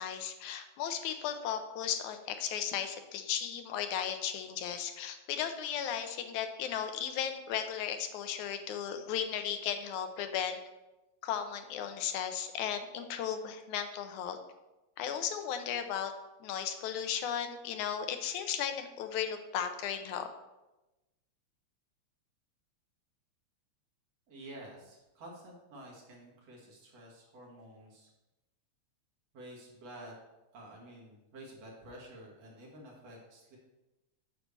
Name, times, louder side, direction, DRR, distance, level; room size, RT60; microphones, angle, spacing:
voice 1, 0.0-10.6 11.2-14.4 15.0-16.1 16.4-20.3, left 9 dB, 90° left, 7 dB, 2.2 m, -35 dB
voice 2, 24.3-28.1 29.3-30.2 30.5-33.6, right 1 dB, 60° right, -3 dB, 2.9 m, -50 dB
9.1 x 3.3 x 6.5 m, 1.0 s
omnidirectional pair, 3.3 m